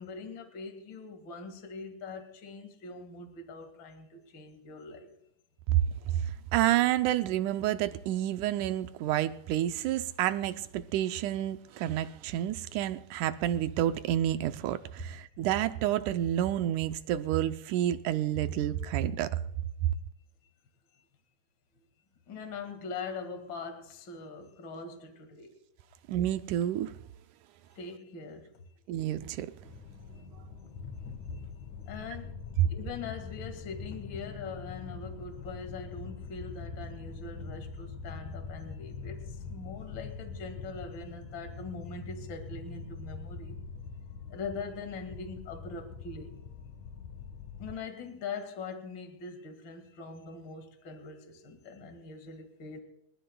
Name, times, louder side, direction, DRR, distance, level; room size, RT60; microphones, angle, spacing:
voice 1, 0.0-5.1 22.3-25.5 27.8-28.5 31.3-31.4 31.9-32.4 32.7-43.6 44.3-46.3 47.6-52.8, left 4 dB, 40° left, 2.2 m, -42 dB
voice 2, 6.5-19.3 26.1-26.9 28.9-29.5 32.6-32.7, right 12 dB, 80° right, 1.9 m, -29 dB
sound 1, 29.6-47.8, left 5 dB, 65° left, 2.6 m, -43 dB
27.0 x 13.5 x 2.3 m
omnidirectional pair, 4.0 m